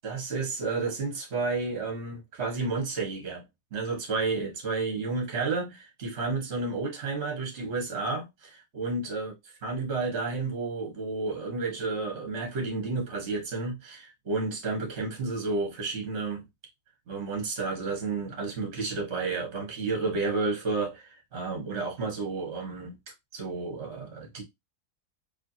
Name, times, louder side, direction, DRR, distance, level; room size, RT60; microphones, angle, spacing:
voice 1, 0.0-3.4 3.7-9.3 9.6-16.4 17.1-22.9 23.3-24.4, right 3 dB, 45° right, 1.5 m, -31 dB
4.4 x 2.9 x 2.7 m
omnidirectional pair, 1.7 m